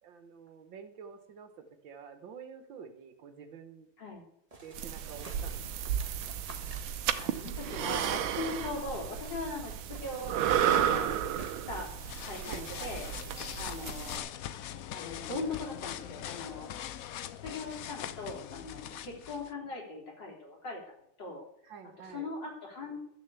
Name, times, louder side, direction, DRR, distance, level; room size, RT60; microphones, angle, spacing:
voice 1, 0.0-3.9 4.6-5.8 12.4-13.0 21.6-22.3, right 6 dB, 70° right, 8 dB, 1.9 m, -49 dB
sound 1, 4.5-9.4 9.7-12.0, right 2 dB, 20° right, 1.4 m, -52 dB
sound 2, 4.7-14.2, right 10 dB, 90° right, 1.6 m, -33 dB
voice 2, 7.1-10.4 10.7-11.2 11.5-11.9 12.2-13.1 13.6-14.3 14.9-16.7 17.4-21.5 22.1-23.0, left 3 dB, 60° left, -1 dB, 4.0 m, -40 dB
sound 3, 11.8-19.5, left 11 dB, 75° left, 0.8 m, -42 dB
13.0 x 6.8 x 8.1 m, 0.77 s
omnidirectional pair, 2.2 m